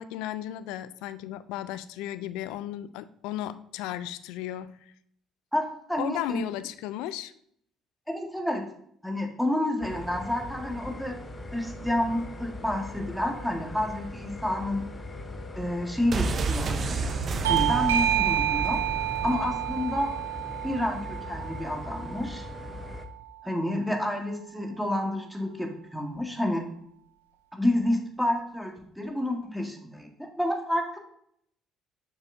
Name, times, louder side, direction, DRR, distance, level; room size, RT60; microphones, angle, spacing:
voice 1, 0.0-4.9 6.0-7.3, left 12 dB, 75° left, 15 dB, 0.3 m, -35 dB
voice 2, 5.5-6.4 8.1-8.7 9.0-11.2 11.5-14.8 15.5-17.2 17.5-18.8 19.2-20.1 20.6-22.5 23.4-26.6 27.6-31.0, left 1 dB, ahead, 2 dB, 1.6 m, -29 dB
sound 1, 9.8-23.1, left 2 dB, 30° left, 0.9 m, -40 dB
sound 2, 16.1-19.9 20.1-20.2, right 4 dB, 45° right, 0.6 m, -31 dB
Bell / Doorbell, 17.4-22.6, right 12 dB, 90° right, 0.4 m, -29 dB
6.9 x 6.4 x 2.7 m, 0.68 s
hypercardioid pair, 55°, 0 cm